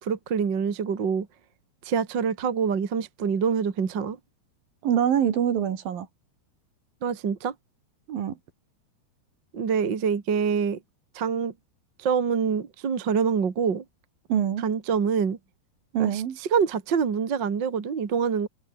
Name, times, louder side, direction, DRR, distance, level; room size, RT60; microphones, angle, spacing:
voice 1, 0.0-1.3 1.8-4.2 7.0-7.5 9.5-10.8 11.1-11.5 12.0-13.8 14.6-15.4 16.0-16.2 16.5-18.5, right 6 dB, 40° right, 1.8 m, -25 dB
voice 2, 4.8-6.1 8.1-8.4 14.3-14.6 15.9-16.4, right 9 dB, 60° right, 3.6 m, -24 dB
omnidirectional pair, 5.1 m